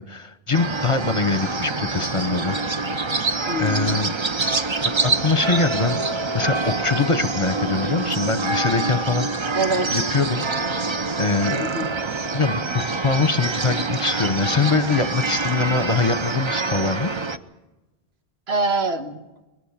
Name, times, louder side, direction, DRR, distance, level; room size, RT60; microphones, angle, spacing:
voice 1, 0.0-3.1 3.6-4.1 5.0-6.0 6.3-9.3 9.9-10.5 11.2-11.6 12.3-17.1, left 4 dB, 35° left, 12 dB, 0.8 m, -23 dB
sound 1, 0.5-17.4, right 3 dB, 30° right, 0.7 m, -26 dB
voice 2, 3.5-4.0 9.5-10.0 11.6-11.9 18.5-19.2, right 2 dB, 85° right, 7 dB, 1.6 m, -24 dB
21.5 x 18.5 x 7.3 m, 1.1 s
omnidirectional pair, 1.0 m